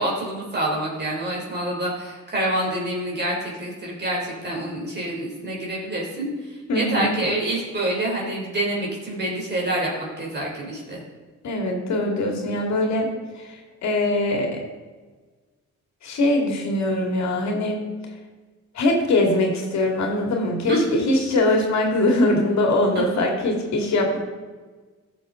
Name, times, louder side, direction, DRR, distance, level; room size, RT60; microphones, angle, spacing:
voice 1, 0.0-9.9 10.2-11.0 20.7-21.0, right 1 dB, 35° right, -3 dB, 3.2 m, -27 dB
voice 2, 6.7-7.1 11.4-14.6 16.0-17.9 18.7-24.2, left 2 dB, 65° left, 1 dB, 2.3 m, -22 dB
14.0 x 6.8 x 3.8 m, 1.4 s
cardioid pair, 90°, 30 cm